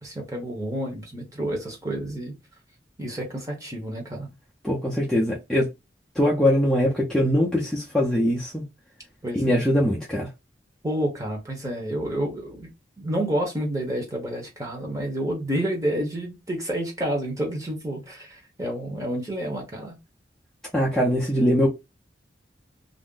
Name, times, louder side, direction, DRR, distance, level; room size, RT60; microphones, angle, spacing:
voice 1, 0.0-2.3 3.0-4.3 9.2-9.6 10.8-12.7 13.0-20.0, right 1 dB, 20° right, 0.8 m, -29 dB
voice 2, 4.6-5.7 6.2-8.6 9.3-10.3 20.7-21.7, equal, 5° left, 0.5 m, -22 dB
2.5 x 2.1 x 3.6 m
head